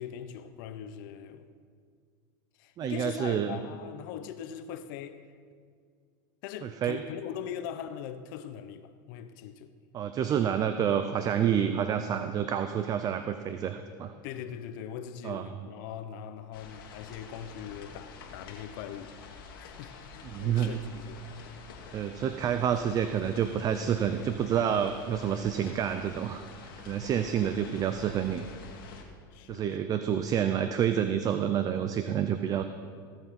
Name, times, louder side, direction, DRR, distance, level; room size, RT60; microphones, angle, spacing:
voice 1, 0.0-1.5 2.6-5.3 6.4-9.7 14.2-19.2 19.6-21.6 27.0-27.1 29.3-29.8, left 9 dB, 65° left, 0.9 m, -41 dB
voice 2, 2.8-3.6 6.6-7.0 9.9-14.1 15.2-15.5 20.3-20.8 21.9-28.5 29.5-32.6, right 9 dB, 30° right, 0.6 m, -28 dB
sound 1, 16.5-29.0, left 5 dB, 85° left, 2.1 m, -47 dB
16.5 x 7.2 x 5.9 m
supercardioid pair, 120°, 12 cm